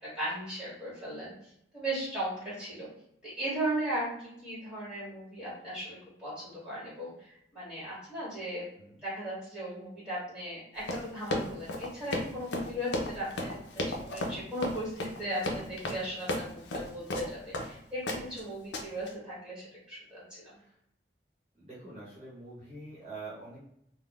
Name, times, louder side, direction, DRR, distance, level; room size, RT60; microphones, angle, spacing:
voice 1, 0.0-1.3 1.7-2.9 3.2-8.7 9.0-20.2, right 1 dB, 5° right, -8 dB, 1.5 m, -37 dB
Run, 10.8-17.7 18.1-18.4 18.7-19.1, left 1 dB, 80° left, 0.5 m, -34 dB
voice 2, 21.5-23.6, right 3 dB, 35° right, -9 dB, 1.0 m, -45 dB
3.4 x 2.1 x 2.3 m, 0.74 s
head